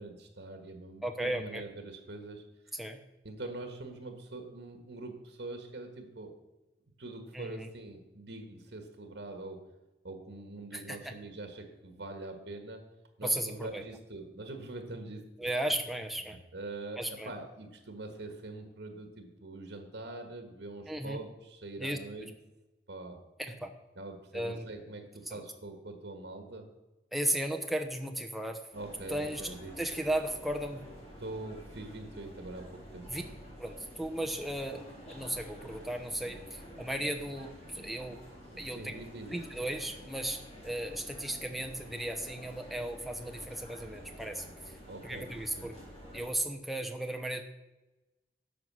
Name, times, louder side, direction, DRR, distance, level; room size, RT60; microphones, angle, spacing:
voice 1, 0.0-2.4 3.2-6.3 7.0-9.6 10.0-12.8 13.2-15.5 16.3-22.3 22.9-23.2 23.9-26.7 28.7-29.8 31.2-33.1 38.5-39.4 44.9-45.3 45.6-45.7, right 2 dB, 80° right, 5 dB, 1.5 m, -44 dB
voice 2, 1.0-1.6 2.7-3.0 7.3-7.7 10.7-11.1 13.2-13.8 15.4-16.4 17.0-17.3 20.9-21.2 21.8-22.3 23.4-23.7 24.3-24.7 25.3-25.4 27.1-28.6 29.1-29.4 29.8-30.9 33.1-33.2 33.6-34.8 35.1-38.2 38.6-38.9 39.3-44.7 45.0-45.7 46.1-47.4, right 1 dB, ahead, 4 dB, 0.8 m, -35 dB
sound 1, 28.7-46.3, equal, 35° left, 4.0 m, -49 dB
11.0 x 7.0 x 6.2 m, 1.1 s
head